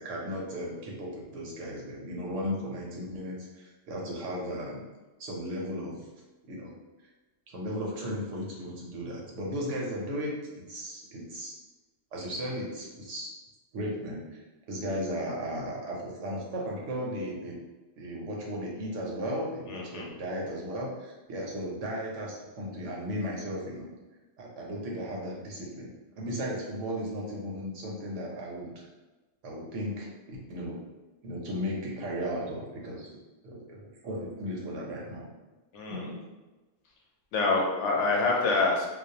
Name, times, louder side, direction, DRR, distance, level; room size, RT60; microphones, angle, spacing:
voice 1, 0.0-4.8 5.2-6.0 6.5-6.7 7.5-11.5 12.1-13.3 13.7-14.4 14.7-17.6 18.0-23.9 24.4-25.9 26.2-28.8 29.4-30.8 31.2-33.1 33.4-35.3 35.9-36.2, equal, 80° right, -3 dB, 1.0 m, -35 dB
voice 2, 19.7-20.0 35.7-36.1 37.3-38.9, left 3 dB, 75° left, -1 dB, 0.9 m, -26 dB
2.4 x 2.0 x 2.6 m, 1.2 s
omnidirectional pair, 1.2 m